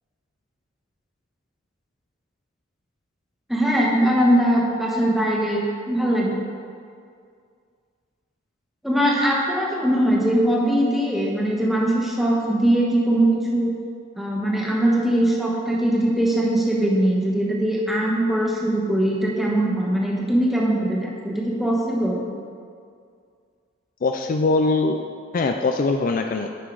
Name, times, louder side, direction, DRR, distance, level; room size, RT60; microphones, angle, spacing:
voice 1, 3.5-6.4 8.8-13.7 14.1-22.3, right 1 dB, ahead, -4 dB, 1.3 m, -21 dB
voice 2, 24.0-25.0 25.3-26.5, left 3 dB, 45° left, 5 dB, 0.4 m, -22 dB
10.0 x 5.6 x 4.7 m, 2.2 s
head